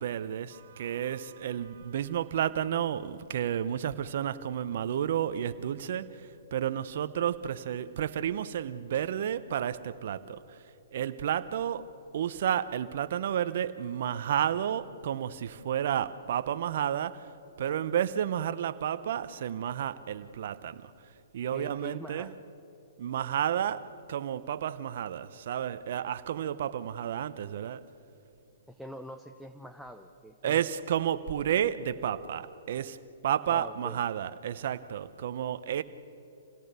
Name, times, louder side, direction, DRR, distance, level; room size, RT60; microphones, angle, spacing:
voice 1, 0.0-10.6 10.9-17.3 17.6-20.9 21.3-22.3 23.0-27.9 30.4-33.0 33.2-35.8, right 10 dB, 60° right, 0.8 m, -31 dB
voice 2, 21.5-22.3 28.7-30.6 33.5-34.0, equal, ahead, 0.7 m, -44 dB
27.0 x 17.0 x 6.8 m
hypercardioid pair, 130°, 0 cm